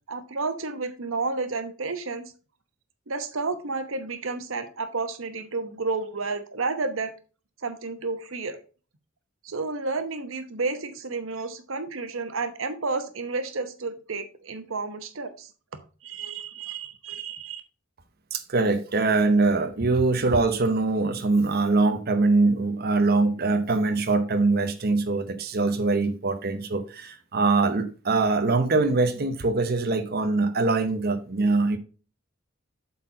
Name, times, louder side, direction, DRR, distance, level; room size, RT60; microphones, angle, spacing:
voice 1, 0.1-2.3 3.1-7.1 7.6-8.6 9.4-15.5 16.0-17.6, right 3 dB, 90° right, 1.0 m, -31 dB
voice 2, 18.3-31.8, right 3 dB, 50° right, 0.8 m, -23 dB
7.9 x 4.3 x 4.9 m
head